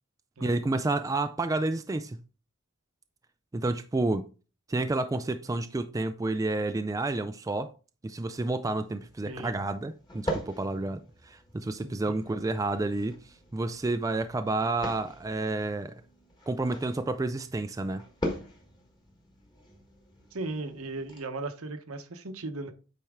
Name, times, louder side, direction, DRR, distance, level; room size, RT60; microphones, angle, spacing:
voice 1, 0.4-2.2 3.5-4.2 4.7-7.7 8.0-13.2 13.5-15.9 16.5-18.0, right 2 dB, 15° right, 0.3 m, -30 dB
sound 1, 8.8-21.2, equal, 20° left, 1.5 m, -42 dB
voice 2, 11.8-12.1 20.3-22.7, right 2 dB, 75° right, 1.0 m, -37 dB
8.6 x 4.4 x 3.6 m
head